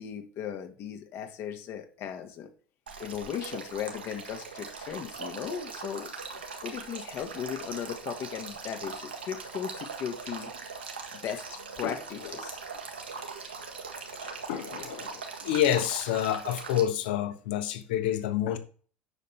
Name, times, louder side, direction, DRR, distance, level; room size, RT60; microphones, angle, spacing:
voice 1, 0.0-2.5 3.0-6.1 6.6-10.5 11.1-11.4 11.8-12.6, left 9 dB, 50° left, 1.6 m, -37 dB
Male speech man speaking / Stream / Trickle dribble, 2.9-16.8, right 4 dB, 85° right, 1.9 m, -41 dB
voice 2, 14.2-18.6, left 11 dB, 70° left, 1.3 m, -28 dB
10.0 x 6.9 x 3.3 m
figure-of-eight pair, 65°, 6 cm